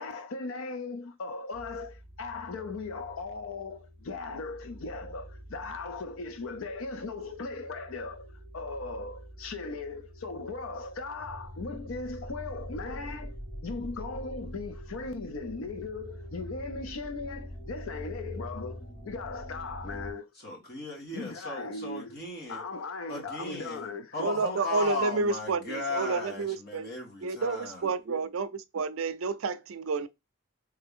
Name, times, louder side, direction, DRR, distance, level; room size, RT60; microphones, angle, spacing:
voice 1, 0.0-8.3 8.5-20.3 21.1-22.2 22.5-24.3, left 3 dB, 65° left, 0.5 m, -38 dB
sound 1, 1.5-20.1, equal, 25° left, 1.0 m, -45 dB
voice 2, 20.4-22.6 23.1-23.8 24.1-27.8, left 3 dB, 45° left, 1.6 m, -36 dB
voice 3, 24.2-26.9 27.2-30.1, right 4 dB, 70° right, 0.5 m, -30 dB
3.3 x 3.3 x 3.6 m
head